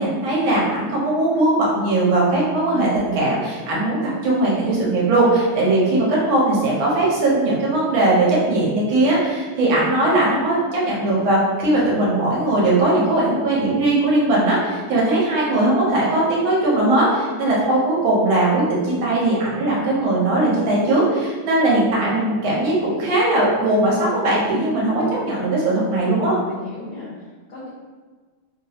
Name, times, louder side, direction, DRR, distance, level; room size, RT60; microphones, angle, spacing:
voice 1, 0.0-26.4, right 2 dB, 75° right, -5 dB, 1.8 m, -19 dB
voice 2, 25.9-27.7, left 3 dB, 55° left, -8 dB, 1.2 m, -37 dB
3.7 x 2.9 x 2.8 m, 1.4 s
omnidirectional pair, 2.2 m